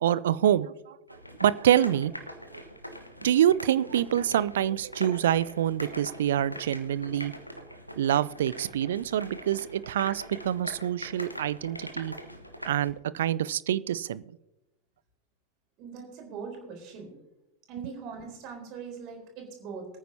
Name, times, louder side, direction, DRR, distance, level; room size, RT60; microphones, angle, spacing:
voice 1, 0.0-1.0 1.4-2.1 2.5-2.6 3.2-7.3 8.0-12.1 12.6-14.2, right 11 dB, 60° right, 19 dB, 0.4 m, -26 dB
sound 1, 1.1-12.9, equal, 90° left, 1.2 m, -42 dB
voice 2, 15.8-17.1 17.7-19.9, right 6 dB, 40° right, 2 dB, 3.9 m, -41 dB
23.0 x 9.3 x 2.8 m, 0.93 s
figure-of-eight pair, 90°, 0 cm